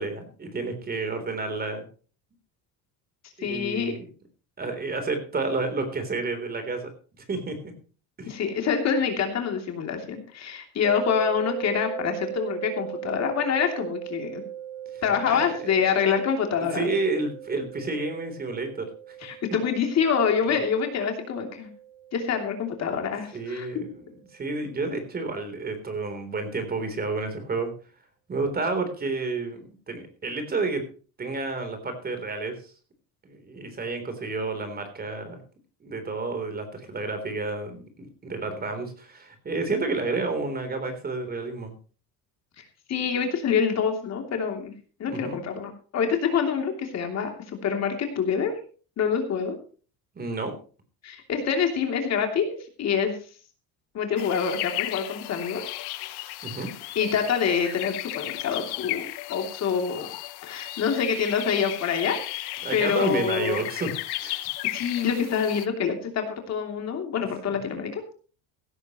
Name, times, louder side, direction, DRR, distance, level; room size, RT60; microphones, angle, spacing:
voice 1, 0.0-1.9 3.4-4.1 4.6-6.9 7.3-7.6 8.2-8.3 14.9-15.7 16.5-19.2 20.5-20.6 23.3-27.7 28.3-30.8 31.2-32.6 33.2-35.4 35.8-41.7 45.1-45.4 50.2-50.6 56.4-56.7 62.6-64.4 67.5-67.6, right 3 dB, 25° right, 7 dB, 3.7 m, -30 dB
voice 2, 3.4-4.0 8.3-14.4 15.0-16.9 19.2-21.7 22.1-23.7 42.6-44.7 45.0-47.3 47.6-48.5 49.0-49.6 51.0-52.5 52.8-53.2 53.9-55.6 56.9-60.1 60.4-63.6 64.6-68.2, left 7 dB, 45° left, 4 dB, 3.0 m, -26 dB
sound 1, 10.8-23.9, right 11 dB, 60° right, 6.0 m, -39 dB
sound 2, 54.2-65.7, left 18 dB, 75° left, 1.1 m, -35 dB
16.5 x 13.5 x 3.1 m, 0.38 s
cardioid pair, 140°, 38 cm